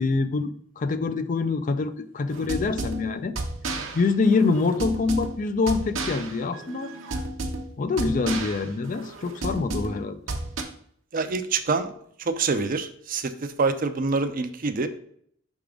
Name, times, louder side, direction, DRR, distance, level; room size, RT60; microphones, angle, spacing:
voice 1, 0.0-3.3 3.9-6.9 7.8-10.2, left 4 dB, 40° left, 10 dB, 0.4 m, -25 dB
sound 1, 2.3-10.6, right 2 dB, 75° right, 0.9 m, -33 dB
voice 2, 11.1-11.9 12.4-13.2 13.6-14.9, right 4 dB, 45° right, 10 dB, 0.5 m, -25 dB
5.8 x 3.6 x 5.0 m, 0.65 s
head